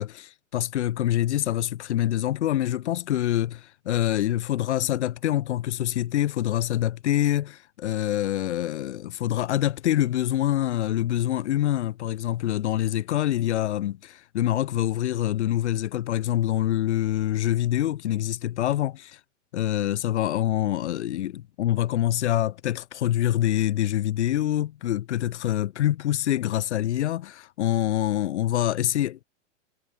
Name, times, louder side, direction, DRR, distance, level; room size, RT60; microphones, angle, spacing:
voice 1, 0.0-19.2 19.5-29.2, left 13 dB, 70° left, 2.6 m, -25 dB
supercardioid pair, 155°, 36 cm